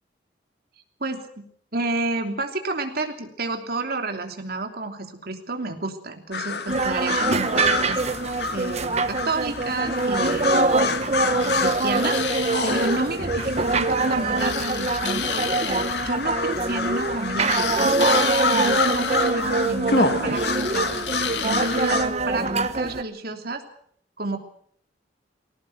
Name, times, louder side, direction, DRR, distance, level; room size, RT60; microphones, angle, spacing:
voice 1, 1.0-1.4 1.7-8.0 8.5-10.9 11.6-12.2 12.6-18.1 18.5-20.9 21.4-23.6 24.2-24.4, right 2 dB, 60° right, 5 dB, 3.1 m, -30 dB
sound 1, 6.3-22.1, left 4 dB, 65° left, 1.9 m, -28 dB
sound 2, 6.7-23.0, right 3 dB, 40° right, 1.2 m, -24 dB
sound 3, 11.4-13.0 14.4-16.1 17.4-19.4 20.3-22.0, left 8 dB, 80° left, 2.0 m, -32 dB
20.5 x 17.5 x 8.0 m, 0.65 s
head